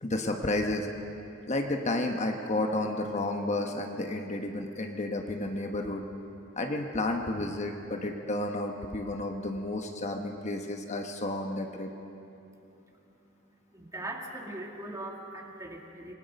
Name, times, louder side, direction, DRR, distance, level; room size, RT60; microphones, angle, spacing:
voice 1, 0.0-0.9 1.5-6.0 6.6-11.9, left 2 dB, 35° left, 3 dB, 1.1 m, -31 dB
voice 2, 13.7-16.1, right 1 dB, 15° right, 1 dB, 1.9 m, -40 dB
27.0 x 20.0 x 5.2 m, 2.8 s
head